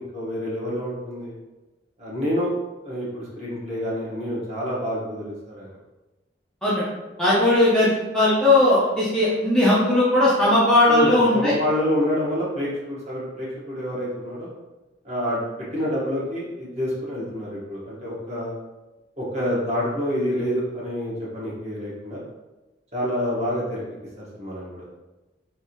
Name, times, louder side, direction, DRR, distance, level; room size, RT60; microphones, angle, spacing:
voice 1, 0.0-1.3 2.0-2.5 2.8-5.7 10.9-14.5 15.0-15.4 15.7-18.5 19.2-22.2 22.9-23.8 24.3-24.8, equal, 35° right, -7 dB, 1.2 m, -27 dB
voice 2, 7.2-11.5, left 1 dB, 5° left, -9 dB, 0.6 m, -18 dB
3.4 x 2.6 x 2.9 m, 1.1 s
head